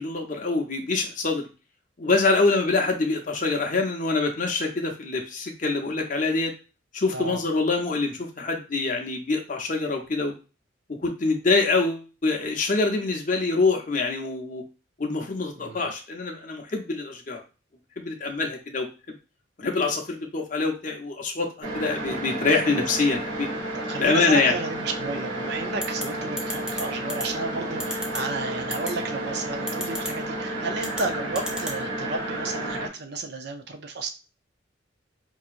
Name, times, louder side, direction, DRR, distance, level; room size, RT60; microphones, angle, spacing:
voice 1, 0.0-1.5 2.0-6.5 6.9-10.3 10.9-14.6 15.0-17.4 18.0-18.9 19.6-23.5 24.0-24.5, left 3 dB, 40° left, 2 dB, 0.7 m, -25 dB
voice 2, 15.6-15.9 23.7-34.1, right 3 dB, 55° right, 6 dB, 0.5 m, -32 dB
sound 1, 21.6-32.9, right 1 dB, 75° right, 1.0 m, -31 dB
sound 2, 25.8-26.0 26.4-26.8 27.1-27.2 27.8-28.2 28.7-28.9 29.7-30.1 30.8-31.0 31.4-31.8, equal, 5° right, 0.4 m, -31 dB
4.6 x 2.8 x 2.5 m, 0.32 s
head